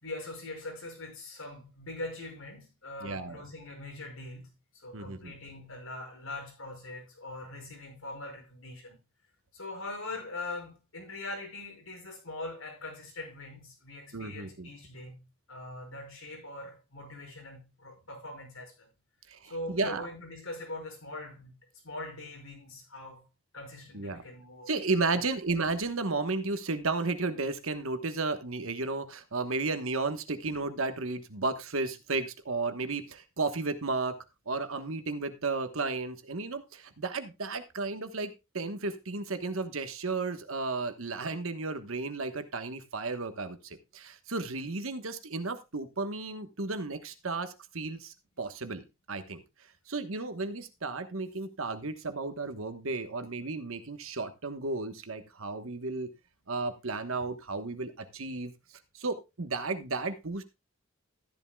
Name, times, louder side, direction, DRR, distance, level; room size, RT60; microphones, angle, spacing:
voice 1, 0.0-9.0 9.5-15.2 15.5-18.9 19.4-21.5 21.8-23.3 23.5-24.7 25.1-25.2, left 2 dB, 75° left, 5.8 m, -42 dB
voice 2, 3.0-3.4 4.9-5.3 14.1-14.7 19.3-20.1 23.9-24.2 24.7-34.1 34.5-49.4 49.9-56.1 56.5-58.5 58.9-60.4, right 3 dB, 75° right, 1.3 m, -33 dB
13.5 x 10.5 x 2.3 m
head